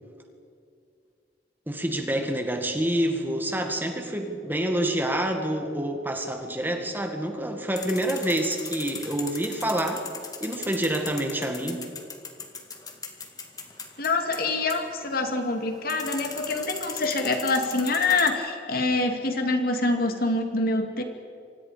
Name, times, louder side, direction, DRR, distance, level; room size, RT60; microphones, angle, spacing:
voice 1, 1.7-10.1 10.4-11.8, right 1 dB, 10° right, 4 dB, 2.0 m, -27 dB
sound 1, 7.8-18.3, left 5 dB, 20° left, 2.1 m, -39 dB
voice 2, 14.0-21.0, left 3 dB, 55° left, 4 dB, 2.5 m, -25 dB
28.5 x 25.0 x 5.2 m, 2.4 s
head